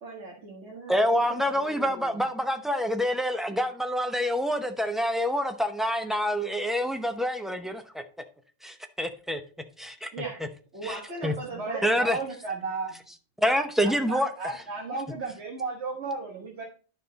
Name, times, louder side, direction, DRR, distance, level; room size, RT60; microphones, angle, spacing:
voice 1, 0.0-2.2 10.1-10.4 10.7-11.9, right 3 dB, 85° right, 2.0 m, -39 dB
voice 2, 0.9-8.0 8.6-9.4 9.8-10.1 10.8-11.3 11.8-12.2 13.4-14.3, equal, ahead, 0.5 m, -27 dB
voice 3, 11.5-12.9 13.8-16.6, right 3 dB, 70° right, 1.5 m, -34 dB
10.0 x 5.5 x 4.0 m
omnidirectional pair, 1.2 m